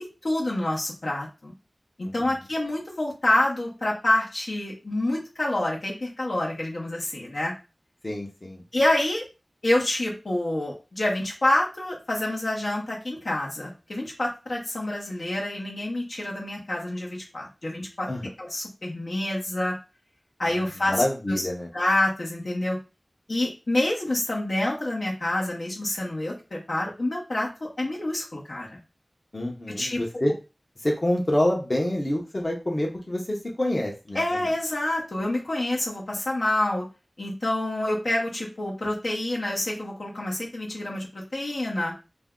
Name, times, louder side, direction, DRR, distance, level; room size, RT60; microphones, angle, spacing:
voice 1, 0.2-1.5 2.0-7.5 8.7-9.2 9.6-18.1 18.4-19.7 20.4-21.4 21.7-22.8 23.3-28.8 29.7-30.0 34.1-36.8 37.2-41.9, left 1 dB, 80° left, -2 dB, 0.9 m, -27 dB
voice 2, 8.0-8.6 18.1-18.2 20.9-21.7 29.3-30.3 30.8-34.5, left 1 dB, 45° left, -1 dB, 0.8 m, -27 dB
2.6 x 2.2 x 3.6 m, 0.30 s
wide cardioid pair, 50°, 0 cm